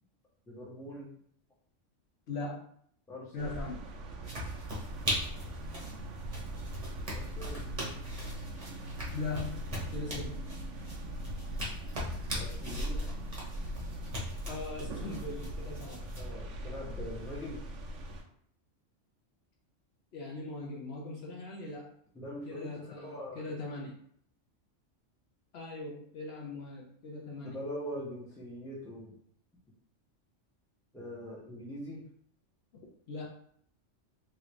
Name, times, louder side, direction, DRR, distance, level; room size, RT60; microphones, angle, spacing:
voice 1, 0.5-1.1 3.1-3.6 7.1-7.7 12.3-13.2 16.2-17.6 22.1-23.5 27.4-29.2 30.9-32.1, equal, 5° left, -4 dB, 0.6 m, -42 dB
voice 2, 2.3-2.6 3.3-3.8 9.1-9.6 9.9-10.4 14.5-16.0 20.1-21.9 22.5-24.0 25.5-27.6 33.1-33.3, left 3 dB, 60° left, -2 dB, 0.8 m, -40 dB
sound 1, 3.4-18.2, right 1 dB, 80° right, 0.9 m, -40 dB
sound 2, 4.2-16.3, equal, 35° right, 0.8 m, -41 dB
3.2 x 2.4 x 3.0 m, 0.65 s
omnidirectional pair, 1.3 m